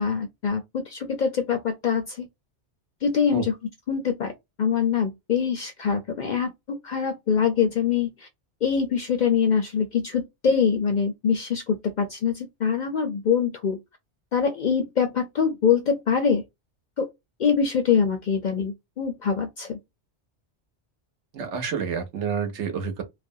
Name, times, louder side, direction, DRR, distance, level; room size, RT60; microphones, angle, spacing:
voice 1, 0.0-2.3 3.0-3.5 3.9-4.3 4.6-8.3 8.6-13.8 14.3-16.4 17.0-17.1 17.4-19.8, left 6 dB, 60° left, 0.5 m, -24 dB
voice 2, 21.3-23.0, right 6 dB, 80° right, 1.0 m, -29 dB
2.4 x 2.1 x 2.5 m
omnidirectional pair, 1.2 m